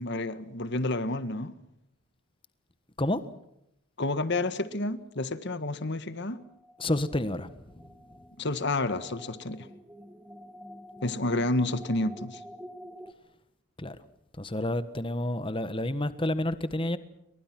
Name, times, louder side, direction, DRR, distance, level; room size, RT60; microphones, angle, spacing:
voice 1, 0.0-1.5 4.0-6.4 8.4-9.7 11.0-12.4, left 2 dB, 50° left, 13 dB, 1.5 m, -30 dB
sound 1, 6.3-13.1, equal, 5° right, 1.9 m, -48 dB
voice 2, 6.8-7.9 13.8-14.0 14.4-17.0, left 1 dB, 25° left, 13 dB, 1.4 m, -30 dB
29.5 x 23.5 x 6.1 m, 0.81 s
head